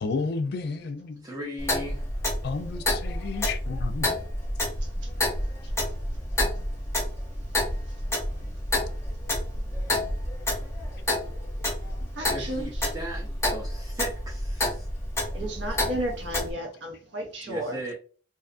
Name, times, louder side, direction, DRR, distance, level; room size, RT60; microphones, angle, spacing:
voice 1, 0.0-1.3 2.4-4.1, left 4 dB, 55° left, 0.4 m, -31 dB
voice 2, 1.2-2.0 12.3-14.9 17.5-17.9, right 1 dB, 20° right, 0.5 m, -37 dB
Clock, 1.6-16.5, left 1 dB, 15° left, 0.7 m, -29 dB
voice 3, 12.2-12.9 15.3-17.8, right 1 dB, 70° right, 0.6 m, -33 dB
2.5 x 2.4 x 2.4 m
head